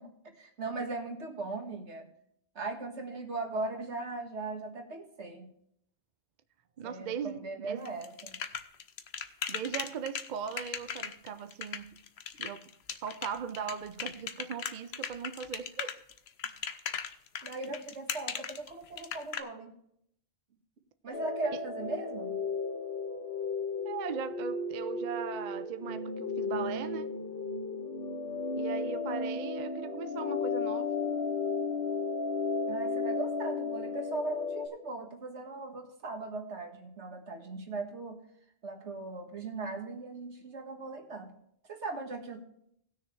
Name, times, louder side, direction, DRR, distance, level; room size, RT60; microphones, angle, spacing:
voice 1, 0.0-2.1 2.6-5.5 6.8-8.4 17.4-19.7 21.0-22.4 32.7-38.2 38.6-41.4 41.7-42.4, right 3 dB, 75° right, 1.8 m, -39 dB
voice 2, 6.8-7.8 9.5-12.0 12.4-12.7 13.0-16.0 21.5-21.6 23.8-27.1 28.6-30.9, right 7 dB, 55° right, 0.5 m, -39 dB
sound 1, 7.9-19.4, left 7 dB, 65° left, 1.0 m, -37 dB
sound 2, 21.1-34.7, left 4 dB, 50° left, 1.5 m, -34 dB
18.5 x 6.6 x 3.2 m
omnidirectional pair, 1.2 m